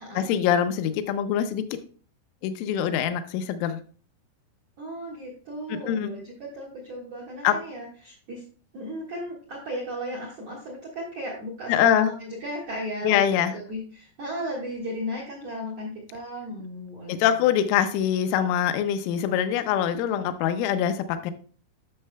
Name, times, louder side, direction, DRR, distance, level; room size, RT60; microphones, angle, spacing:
voice 1, 0.2-1.7 2.4-3.8 5.7-6.1 7.4-7.6 11.7-12.1 13.0-13.5 17.1-21.3, left 9 dB, 85° left, 10 dB, 3.1 m, -24 dB
voice 2, 4.8-8.4 8.7-17.4, equal, 60° right, -1 dB, 1.7 m, -35 dB
11.0 x 6.5 x 2.2 m, 0.41 s
omnidirectional pair, 5.8 m